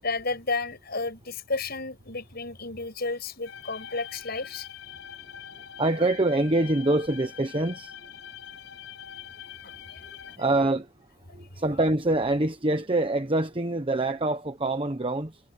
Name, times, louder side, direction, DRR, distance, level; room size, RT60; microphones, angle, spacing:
voice 1, 0.0-4.7 9.6-10.2, left 3 dB, 55° left, 7.7 m, -32 dB
sound 1, 3.4-10.4, left 9 dB, 80° left, 7.3 m, -44 dB
voice 2, 5.8-8.1 10.4-10.9 11.3-15.4, right 2 dB, 30° right, 1.2 m, -25 dB
head